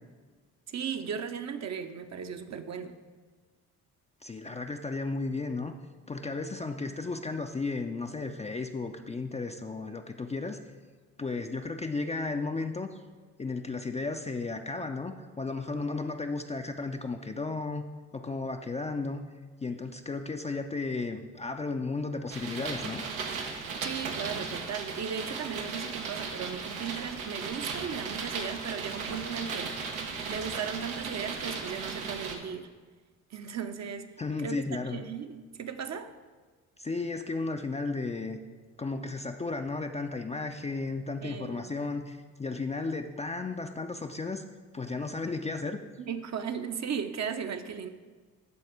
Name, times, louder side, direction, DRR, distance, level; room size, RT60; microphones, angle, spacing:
voice 1, 0.7-3.0 23.8-29.9 30.3-32.7 33.3-34.1 34.4-36.1 41.2-41.7 46.0-47.9, right 7 dB, 40° right, 0.7 m, -36 dB
voice 2, 4.2-5.7 6.1-10.6 11.2-13.0 13.4-17.9 18.1-19.2 19.6-23.0 34.2-35.0 36.8-38.4 38.8-44.4 44.7-45.8, left 3 dB, 15° left, 0.5 m, -34 dB
sound 1, 22.3-32.4, right 5 dB, 85° right, 0.8 m, -36 dB
12.5 x 4.2 x 4.8 m
hypercardioid pair, 45°, 41 cm